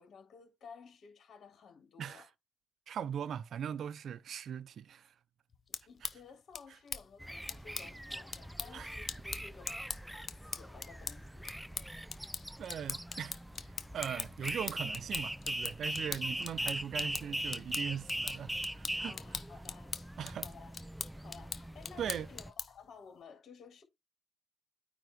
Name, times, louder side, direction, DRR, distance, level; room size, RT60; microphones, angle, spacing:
voice 1, 0.0-2.3 5.7-9.7 10.3-11.5 19.0-20.8 21.1-23.8, left 5 dB, 60° left, 3.6 m, -55 dB
voice 2, 2.9-5.1 8.7-8.9 12.6-19.1 20.2-20.5 22.0-22.3, right 8 dB, 65° right, 0.6 m, -40 dB
sound 1, 5.5-22.9, left 5 dB, 45° left, 1.0 m, -43 dB
sound 2, 7.2-22.5, equal, 5° right, 0.4 m, -41 dB
9.2 x 3.6 x 4.7 m
cardioid pair, 90°, 0 cm